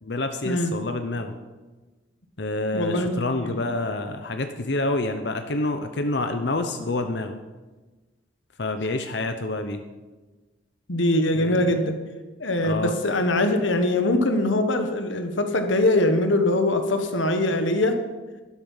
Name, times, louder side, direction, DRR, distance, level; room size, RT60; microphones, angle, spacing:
voice 1, 0.0-1.3 2.4-7.4 8.6-9.8 11.3-11.7 12.6-12.9, left 2 dB, 60° left, 7 dB, 0.8 m, -27 dB
voice 2, 2.7-3.6 10.9-12.0 12.4-18.0, left 1 dB, 80° left, 6 dB, 1.4 m, -22 dB
12.0 x 11.5 x 5.6 m, 1.2 s
head